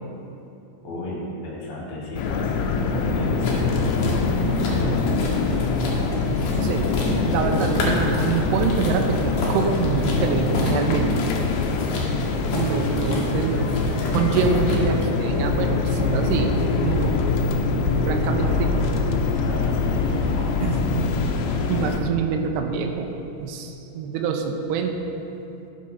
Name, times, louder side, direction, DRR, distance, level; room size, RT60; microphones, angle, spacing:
voice 1, 0.8-4.2 4.7-5.1 18.2-18.8 19.4-20.5, left 1 dB, 40° left, -7 dB, 2.1 m, -34 dB
sound 1, 2.2-22.0, left 4 dB, 80° left, 2.9 m, -23 dB
sound 2, 3.4-14.8, left 1 dB, 60° left, 2.3 m, -32 dB
voice 2, 6.6-11.1 12.5-17.2 18.1-18.8 20.6-20.8 21.7-23.1 23.4-25.3, right 5 dB, 85° right, 4 dB, 2.4 m, -25 dB
11.5 x 6.6 x 5.7 m, 2.9 s
omnidirectional pair, 5.4 m